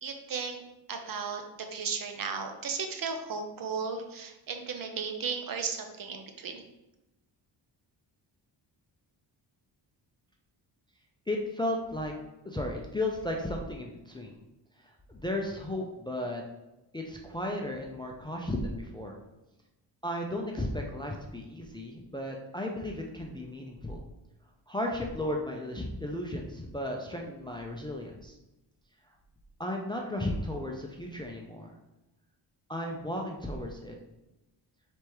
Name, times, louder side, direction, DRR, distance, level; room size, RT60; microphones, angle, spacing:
voice 1, 0.0-0.6 0.9-6.7, right 5 dB, 50° right, 5 dB, 0.6 m, -35 dB
voice 2, 11.3-12.1 12.4-14.4 15.1-16.4 16.9-19.2 20.0-24.0 24.7-28.4 29.6-31.7 32.7-34.0, left 1 dB, 10° left, 0 dB, 0.4 m, -34 dB
4.6 x 3.4 x 3.0 m, 0.98 s
cardioid pair, 110°, 44 cm